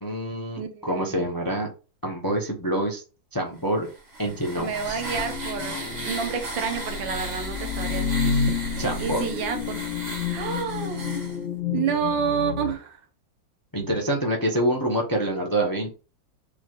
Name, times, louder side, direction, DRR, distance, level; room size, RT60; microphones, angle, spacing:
voice 1, 0.0-1.7 2.0-3.0 3.3-3.9 4.2-5.0 8.8-9.2 13.7-15.9, right 1 dB, 20° left, 1 dB, 0.5 m, -26 dB
voice 2, 0.6-1.2 4.6-8.3 9.0-9.8 10.3-11.0 11.7-13.0, right 7 dB, 85° right, 6 dB, 1.7 m, -29 dB
sound 1, 3.8-11.4, right 1 dB, 40° right, 1.8 m, -35 dB
sound 2, 4.3-12.7, left 6 dB, 65° left, 0.7 m, -30 dB
7.0 x 3.1 x 2.4 m, 0.33 s
omnidirectional pair, 2.0 m